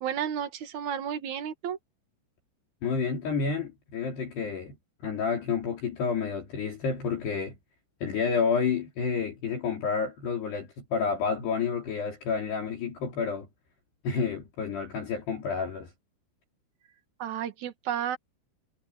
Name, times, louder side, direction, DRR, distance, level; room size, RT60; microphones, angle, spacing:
voice 1, 0.0-1.8 17.2-18.2, right 9 dB, 70° right, 1.7 m, -32 dB
voice 2, 2.8-4.8 5.0-7.6 8.0-13.5 14.0-15.9, left 5 dB, 55° left, 5.4 m, -29 dB
omnidirectional pair, 5.9 m